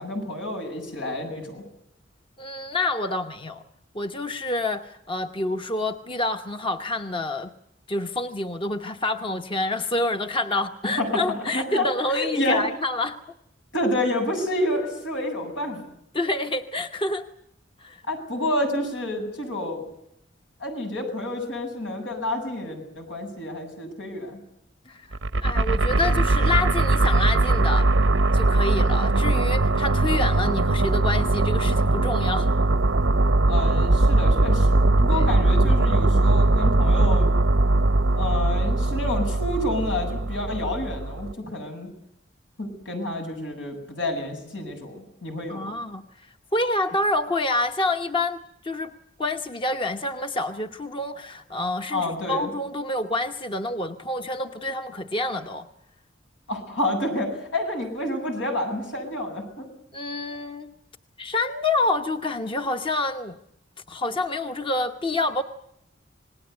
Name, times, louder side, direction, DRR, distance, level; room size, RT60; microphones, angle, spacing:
voice 1, 0.0-1.6 11.0-11.9 12.1-12.6 13.7-15.8 18.1-19.8 20.6-24.4 29.9-30.3 33.5-37.3 38.1-41.9 42.6-45.8 51.9-52.5 56.5-59.7, left 1 dB, 85° left, 4 dB, 8.0 m, -29 dB
voice 2, 2.4-3.6 3.9-7.5 7.9-13.2 16.1-17.3 17.8-18.0 24.9-27.9 28.3-32.5 35.1-35.2 45.5-48.9 49.2-55.7 59.9-60.7 61.2-63.4 63.9-65.4, left 2 dB, 30° left, 6 dB, 1.0 m, -27 dB
sound 1, 25.1-41.3, right 2 dB, 85° right, 0.9 m, -20 dB
27.0 x 20.0 x 8.1 m, 0.79 s
head